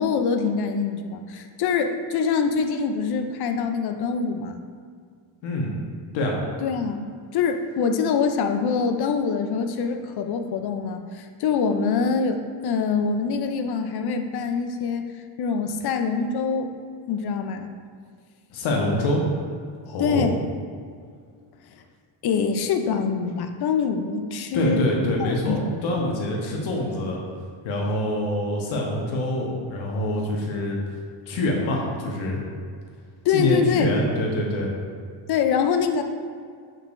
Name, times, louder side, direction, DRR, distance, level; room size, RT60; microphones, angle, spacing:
voice 1, 0.0-4.6 6.6-7.0 7.3-15.1 15.4-16.7 17.1-17.7 20.0-20.4 22.2-24.9 25.2-25.8 33.2-33.9 35.3-36.0, left 5 dB, 55° left, 6 dB, 0.6 m, -24 dB
voice 2, 5.4-5.7 6.1-6.3 18.5-19.2 19.8-20.3 24.5-27.2 27.6-30.8 31.3-32.4 33.3-34.7, left 1 dB, 80° left, -2 dB, 1.3 m, -25 dB
6.5 x 6.3 x 2.6 m, 2.1 s
cardioid pair, 135°, 47 cm